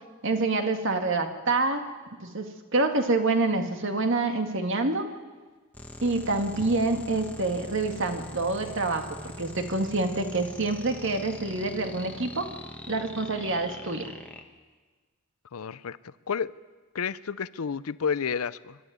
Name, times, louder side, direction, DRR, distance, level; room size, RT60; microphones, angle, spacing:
voice 1, 0.2-1.8 2.2-2.5 2.7-5.0 6.0-12.5 12.9-14.1, right 3 dB, 60° right, 5 dB, 1.9 m, -27 dB
sound 1, 5.7-14.4, left 1 dB, 5° left, 1.4 m, -42 dB
voice 2, 15.5-16.5 16.9-18.8, left 6 dB, 85° left, 17 dB, 0.6 m, -31 dB
24.5 x 12.5 x 9.4 m, 1.3 s
head